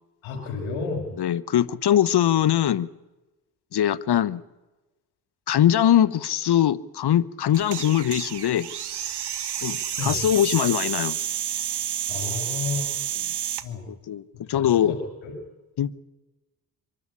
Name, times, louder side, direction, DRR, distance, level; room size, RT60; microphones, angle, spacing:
voice 1, 0.2-1.1 10.0-10.1 12.1-12.9 13.6-13.8 14.5-15.3, left 4 dB, 90° left, 5.6 m, -31 dB
voice 2, 1.2-2.9 3.7-4.4 5.5-8.7 9.6-11.2 13.9-14.2 14.5-14.9 15.8-16.0, left 11 dB, 55° left, 1.1 m, -22 dB
sound 1, 7.5-13.7, right 10 dB, 55° right, 1.5 m, -30 dB
24.5 x 13.5 x 9.8 m
supercardioid pair, 60°, 47 cm